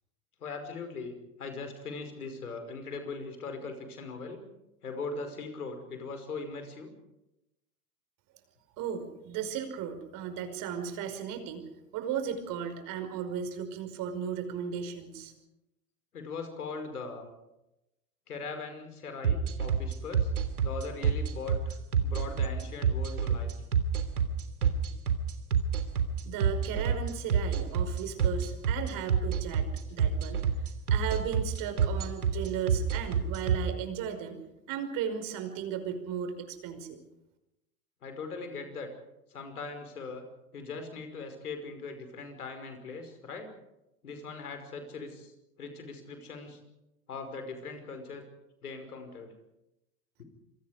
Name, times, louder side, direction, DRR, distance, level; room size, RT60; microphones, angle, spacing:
voice 1, 0.4-4.4 4.8-6.9 16.1-17.3 18.3-20.3 20.6-21.8 22.0-23.5 38.0-38.9 39.3-40.3 40.5-43.5 44.0-45.3 45.6-46.6 47.1-48.3 48.6-49.3 50.2-50.3, left 4 dB, 80° left, 7 dB, 5.6 m, -40 dB
voice 2, 8.8-15.3 26.2-30.4 30.9-34.4 34.7-37.0, right 8 dB, 45° right, 7 dB, 5.5 m, -36 dB
sound 1, 19.2-33.6, right 8 dB, 80° right, 3.2 m, -26 dB
28.0 x 24.5 x 5.1 m, 0.92 s
hypercardioid pair, 90°, 44 cm